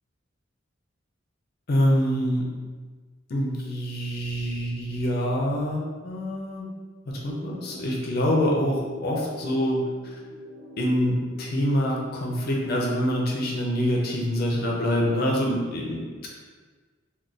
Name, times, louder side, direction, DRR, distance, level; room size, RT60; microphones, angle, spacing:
voice 1, 1.7-2.5 3.3-6.7 7.1-10.1 10.8-16.3, equal, 50° left, -2 dB, 0.5 m, -25 dB
sound 1, 7.1-13.1, equal, 85° right, 0.7 m, -45 dB
2.4 x 2.3 x 3.8 m, 1.4 s
head